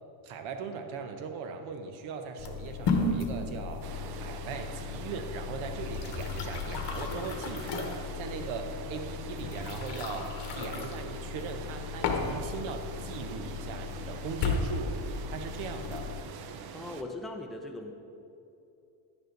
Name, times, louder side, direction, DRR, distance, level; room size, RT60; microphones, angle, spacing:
voice 1, 0.2-3.9 4.2-16.1, right 5 dB, 75° right, 6 dB, 1.2 m, -39 dB
sound 1, 2.4-16.2, left 4 dB, 60° left, 1.3 m, -35 dB
sound 2, 3.8-17.0, right 7 dB, 50° right, 0.7 m, -44 dB
voice 2, 16.7-17.9, left 2 dB, ahead, 2 dB, 0.7 m, -39 dB
11.0 x 9.7 x 4.0 m, 2.7 s
cardioid pair, 125°, 47 cm